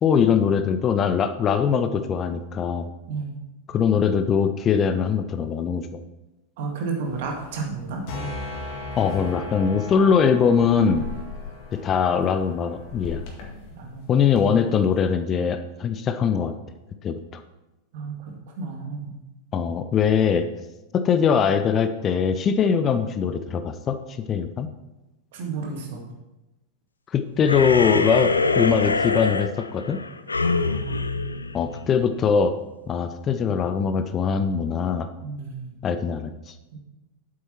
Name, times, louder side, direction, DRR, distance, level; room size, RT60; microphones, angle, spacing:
voice 1, 0.0-2.9 3.7-6.0 9.0-11.1 11.7-13.2 14.1-16.5 17.0-17.4 19.5-20.5 20.9-24.7 27.1-30.0 31.5-32.5 32.9-35.1 35.8-36.5, left 6 dB, 25° left, 10 dB, 0.5 m, -22 dB
voice 2, 6.6-8.0 13.8-14.2 17.9-19.2 25.3-26.1 30.4-31.6 35.2-35.7 36.7-36.8, right 4 dB, 55° right, 1 dB, 2.0 m, -32 dB
sound 1, 7.0-15.0, left 3 dB, 45° left, 2.0 m, -37 dB
sound 2, 27.4-32.2, left 3 dB, 80° left, 0.4 m, -25 dB
7.9 x 7.5 x 4.4 m, 1.0 s
figure-of-eight pair, 90°, 0 cm